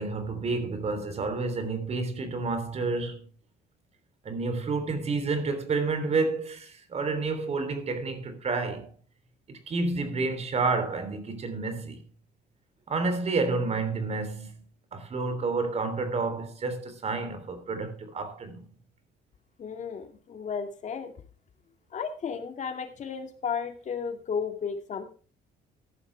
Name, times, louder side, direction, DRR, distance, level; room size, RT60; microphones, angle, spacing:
voice 1, 0.0-3.3 4.2-8.9 9.5-12.0 12.9-14.6 14.9-18.6, right 3 dB, 40° right, 3.4 m, -30 dB
voice 2, 19.6-21.1 21.9-25.1, left 6 dB, 45° left, 2.2 m, -33 dB
14.5 x 11.0 x 3.4 m
cardioid pair, 110°, 17 cm